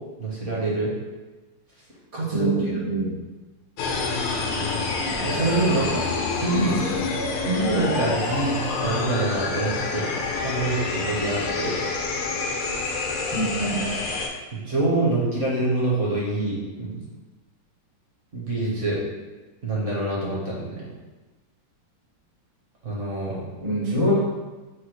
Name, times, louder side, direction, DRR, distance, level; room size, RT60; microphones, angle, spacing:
voice 1, 0.2-0.9 2.1-2.7 5.2-6.0 6.4-6.8 7.4-10.0 10.4-11.8 14.5-17.0 18.3-19.0 19.6-20.9 22.8-23.4, right 2 dB, 50° right, -5 dB, 1.0 m, -25 dB
voice 2, 2.3-3.1 13.3-14.0 23.6-24.4, right 1 dB, 80° right, -6 dB, 0.3 m, -24 dB
sound 1, 3.8-14.3, left 3 dB, 70° left, 1.1 m, -27 dB
4.8 x 2.3 x 4.5 m, 1.2 s
omnidirectional pair, 2.4 m